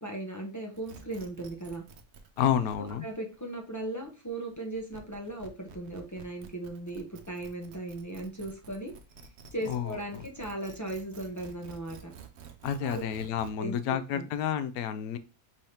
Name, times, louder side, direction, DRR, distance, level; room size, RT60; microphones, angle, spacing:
voice 1, 0.0-1.8 2.8-8.9 9.5-12.1 12.8-13.1 13.6-14.3, right 2 dB, 20° left, 0 dB, 0.5 m, -37 dB
sound 1, 0.7-13.5, right 6 dB, 60° right, 0.7 m, -50 dB
voice 2, 2.4-3.0 9.7-10.0 12.6-15.2, left 9 dB, 75° left, 11 dB, 1.0 m, -30 dB
5.4 x 3.4 x 2.8 m, 0.33 s
omnidirectional pair, 1.6 m